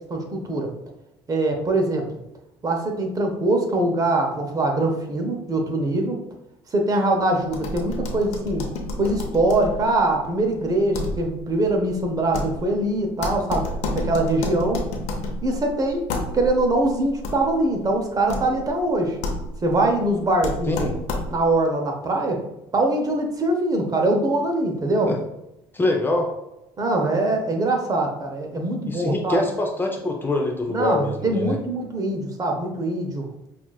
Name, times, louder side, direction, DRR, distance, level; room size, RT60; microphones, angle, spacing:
voice 1, 0.1-0.7 1.3-2.1 2.6-6.2 6.7-8.7 9.0-13.7 13.9-14.9 15.4-16.0 16.3-19.2 19.6-20.7 21.3-22.4 22.7-25.1 26.8-29.4 30.7-33.3, right 2 dB, 30° right, 2 dB, 0.8 m, -23 dB
sound 1, 7.5-21.6, left 2 dB, 75° left, 0.8 m, -31 dB
voice 2, 25.7-26.3 28.8-31.6, left 2 dB, 20° left, 2 dB, 0.6 m, -24 dB
5.7 x 2.5 x 2.3 m, 0.90 s
supercardioid pair, 90°, 12 cm